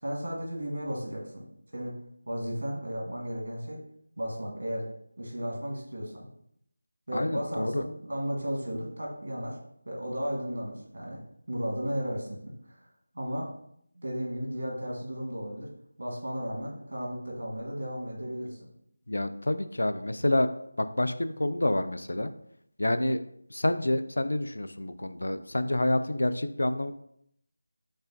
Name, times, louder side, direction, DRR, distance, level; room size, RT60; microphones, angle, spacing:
voice 1, 0.0-1.4 1.7-2.0 2.2-3.8 4.2-4.9 5.2-6.3 7.1-9.6 9.8-11.2 11.5-12.4 12.7-12.8 13.1-13.5 13.9-15.7 16.0-18.7, equal, 85° right, -2 dB, 1.4 m, -34 dB
voice 2, 7.1-7.8 19.1-20.5 20.8-22.3 22.8-23.2 23.5-26.9, left 1 dB, 85° left, 11 dB, 0.3 m, -28 dB
5.3 x 2.2 x 2.6 m, 0.72 s
figure-of-eight pair, 175°, 0 cm